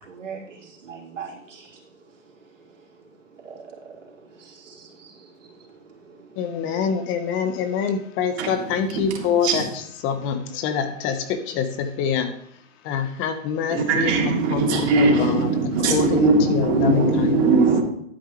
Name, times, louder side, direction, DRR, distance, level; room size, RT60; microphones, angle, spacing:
voice 1, 0.0-6.5, right 6 dB, 70° right, 3.7 m, -43 dB
voice 2, 6.4-12.3 12.8-14.1 14.5-15.5 15.9-17.5, left 7 dB, 30° left, 1.1 m, -26 dB
voice 3, 8.9-9.6 13.7-17.8, right 3 dB, 55° right, 3.3 m, -20 dB
12.0 x 9.2 x 3.2 m
hypercardioid pair, 120°, 39 cm